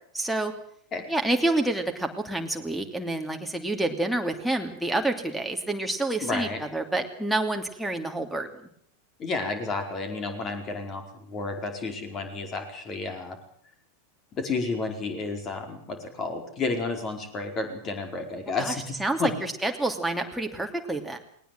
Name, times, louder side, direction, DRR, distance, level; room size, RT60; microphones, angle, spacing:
voice 1, 0.1-0.5 1.1-8.5 18.6-18.7 19.0-21.2, right 2 dB, ahead, 2 dB, 2.8 m, -28 dB
voice 2, 6.2-6.6 9.2-13.4 14.3-19.3, left 3 dB, 30° left, 5 dB, 4.8 m, -31 dB
20.0 x 19.0 x 7.9 m, 0.65 s
figure-of-eight pair, 90°, 0 cm